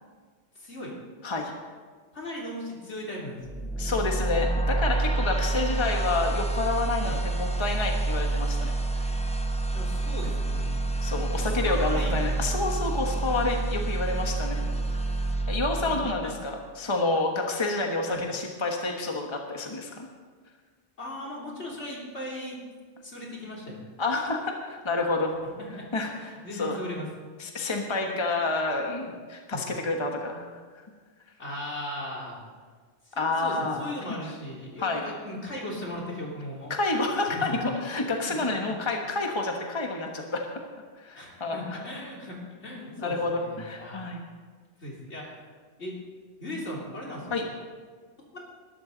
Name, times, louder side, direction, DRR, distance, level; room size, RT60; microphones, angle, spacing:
voice 1, 0.6-1.0 2.1-3.7 5.2-6.1 7.0-7.2 9.7-10.7 11.4-12.6 14.5-14.8 15.7-16.3 18.1-18.2 21.0-22.6 23.0-23.8 25.6-25.9 26.1-27.1 29.5-29.7 31.4-32.4 33.1-36.7 37.2-37.6 38.6-38.7 41.1-44.0 44.8-45.3 45.8-46.0 46.4-47.5, left 1 dB, 70° left, -3 dB, 3.5 m, -38 dB
voice 2, 1.2-1.5 3.8-9.1 11.0-14.6 15.5-20.1 24.0-25.3 25.9-26.8 27.4-30.5 33.2-33.9 34.8-35.1 36.7-40.5 41.0-41.8 43.0-44.2 47.3-47.4, left 3 dB, 25° left, 2 dB, 1.3 m, -29 dB
sound 1, 3.4-16.5, right 2 dB, 5° left, 0.6 m, -28 dB
20.0 x 12.5 x 4.0 m, 1.5 s
omnidirectional pair, 1.2 m